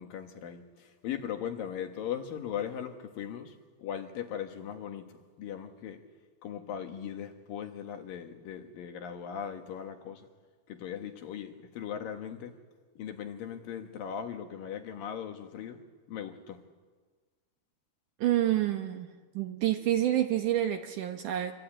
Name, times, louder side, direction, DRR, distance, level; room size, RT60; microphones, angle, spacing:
voice 1, 0.0-6.0 6.4-10.3 10.7-12.6 13.0-15.8 16.1-16.6, left 9 dB, 65° left, 6 dB, 3.0 m, -39 dB
voice 2, 18.2-19.1 19.3-21.5, right 12 dB, 70° right, 6 dB, 2.1 m, -28 dB
26.5 x 23.5 x 8.9 m, 1.5 s
omnidirectional pair, 4.6 m